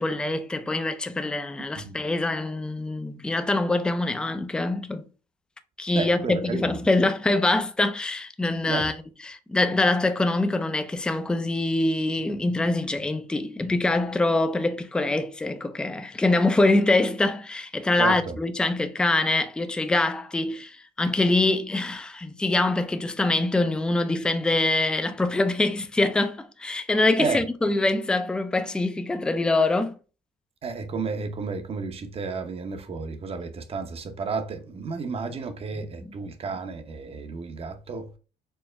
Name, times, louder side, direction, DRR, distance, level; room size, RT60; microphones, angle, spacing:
voice 1, 0.0-5.0 5.8-9.0 9.2-29.9 35.8-36.1, left 2 dB, 5° left, 0.4 m, -24 dB
voice 2, 5.9-6.8 8.6-8.9 18.0-18.4 27.2-27.4 30.6-38.1, right 4 dB, 35° right, 0.7 m, -32 dB
4.5 x 2.1 x 3.2 m
cardioid pair, 110°, 17 cm